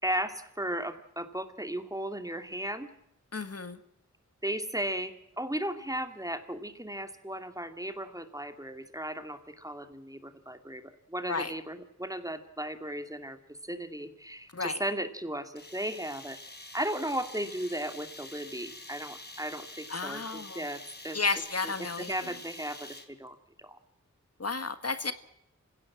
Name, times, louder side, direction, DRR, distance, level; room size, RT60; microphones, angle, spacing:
voice 1, 0.0-2.9 4.4-10.8 11.1-13.4 13.6-16.4 16.7-21.2 21.6-23.8, right 1 dB, 10° right, 8 dB, 2.4 m, -36 dB
voice 2, 3.3-3.8 11.3-11.5 14.5-14.8 19.9-20.6 21.1-22.1 24.4-25.1, left 4 dB, 55° left, 11 dB, 1.6 m, -32 dB
sound 1, 15.5-23.3, left 2 dB, 35° left, 3.7 m, -47 dB
27.5 x 16.5 x 7.5 m, 0.82 s
wide cardioid pair, 60°, 29 cm